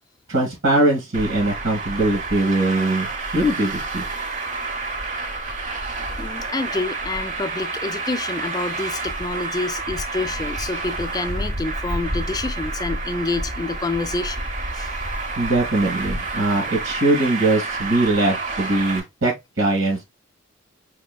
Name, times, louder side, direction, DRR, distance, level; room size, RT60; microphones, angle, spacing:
voice 1, 0.3-4.0 15.4-20.0, right 2 dB, 90° right, 2.2 m, -21 dB
Traffic noise roadway noise, 1.1-19.0, right 3 dB, 40° right, 0.9 m, -29 dB
voice 2, 6.2-14.4 14.7-14.9, left 3 dB, 20° left, 0.3 m, -28 dB
4.7 x 3.5 x 2.2 m
head